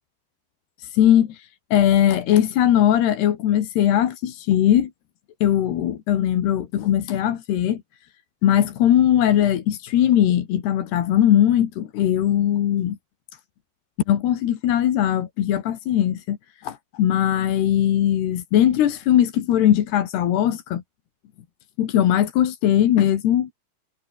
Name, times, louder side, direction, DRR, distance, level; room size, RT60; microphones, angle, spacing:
voice 1, 0.8-4.9 5.4-7.8 8.4-13.0 14.1-16.4 16.6-20.8 21.8-23.5, left 11 dB, 85° left, 4.1 m, -20 dB
omnidirectional pair, 4.6 m